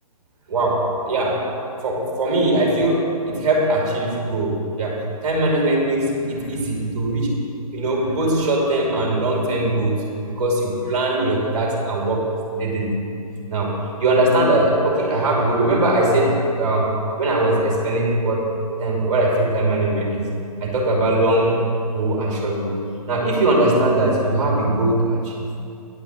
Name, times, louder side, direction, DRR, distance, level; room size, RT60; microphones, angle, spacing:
voice 1, 0.5-1.5 1.8-7.4 7.7-12.3 12.6-13.0 13.5-18.5 18.8-20.2 20.6-21.6 21.9-22.8 23.1-25.5, right 1 dB, 50° right, -2 dB, 2.8 m, -20 dB
10.0 x 5.9 x 7.4 m, 2.5 s
hypercardioid pair, 135°, 20 cm